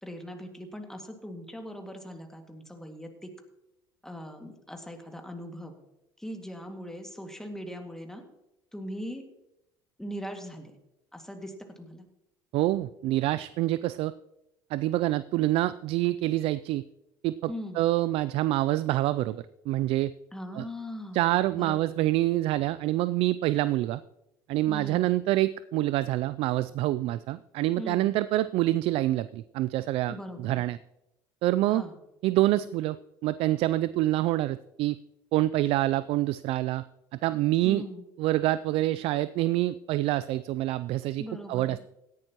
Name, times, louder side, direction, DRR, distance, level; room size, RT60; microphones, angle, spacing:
voice 1, 0.0-3.3 4.0-5.8 6.2-8.2 8.7-9.2 10.0-10.7 11.1-12.1 17.5-17.8 20.3-21.2 21.5-21.9 24.7-25.2 27.8-28.1 30.1-30.6 31.7-31.9 37.6-38.0 41.2-41.8, equal, 5° left, 4 dB, 2.1 m, -40 dB
voice 2, 12.5-14.1 14.7-16.8 17.2-17.5 17.8-20.1 20.5-20.6 21.1-24.0 24.5-30.1 30.4-30.8 31.4-31.8 32.2-33.0 33.2-35.0 35.3-36.8 37.1-37.8 38.2-41.2 41.5-41.8, right 16 dB, 60° right, 16 dB, 0.3 m, -26 dB
17.0 x 11.0 x 3.0 m, 0.90 s
hypercardioid pair, 80°, 11 cm